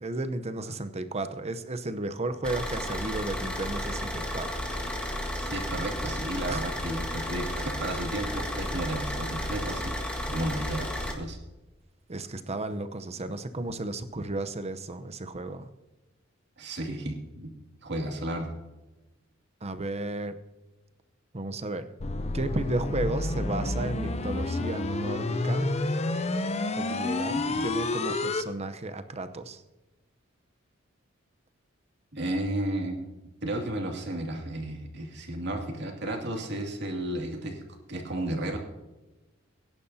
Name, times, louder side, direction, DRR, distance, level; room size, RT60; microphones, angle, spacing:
voice 1, 0.0-4.5 4.8-5.1 6.5-6.6 12.1-15.7 19.6-20.3 21.3-21.9 22.3-25.7 26.8-29.6, right 2 dB, 30° right, 10 dB, 0.8 m, -33 dB
Car / Idling, 2.4-11.1, equal, 5° left, 1.7 m, -33 dB
voice 2, 5.3-9.9 10.3-11.4 16.6-17.5 17.8-18.5 27.3-27.6 32.1-37.6 37.9-38.6, right 1 dB, 55° right, 1 dB, 2.4 m, -33 dB
sound 1, 22.0-28.4, left 2 dB, 30° left, 0.6 m, -29 dB
20.5 x 10.5 x 2.8 m, 1.1 s
head